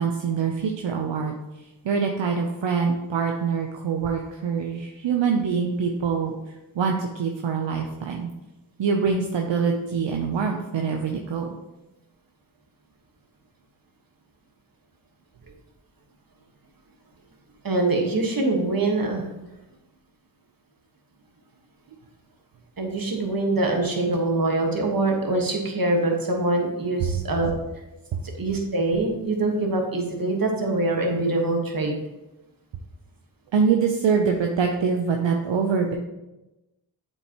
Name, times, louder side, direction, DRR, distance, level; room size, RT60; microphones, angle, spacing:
voice 1, 0.0-1.4 1.8-6.3 6.7-8.3 8.8-11.5 28.1-28.2 33.5-35.9, right 5 dB, 70° right, 3 dB, 0.7 m, -24 dB
voice 2, 17.6-19.2 22.8-27.5 28.4-31.9, right 2 dB, 45° right, 1 dB, 1.5 m, -24 dB
7.7 x 4.5 x 2.9 m, 1.0 s
cardioid pair, 45°, 46 cm